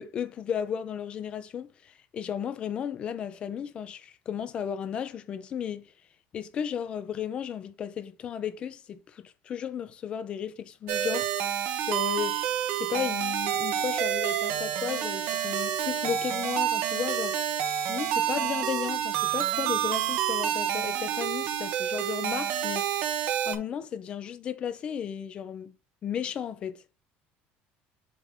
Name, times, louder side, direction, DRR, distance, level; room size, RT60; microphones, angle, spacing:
voice 1, 0.0-5.9 6.3-12.4 12.7-17.4 17.9-23.1 23.5-25.8 26.0-26.8, left 8 dB, 30° left, 0.7 m, -34 dB
sound 1, 10.9-23.6, right 10 dB, 55° right, 1.1 m, -28 dB
7.5 x 2.9 x 5.3 m
cardioid pair, 180°, 4 cm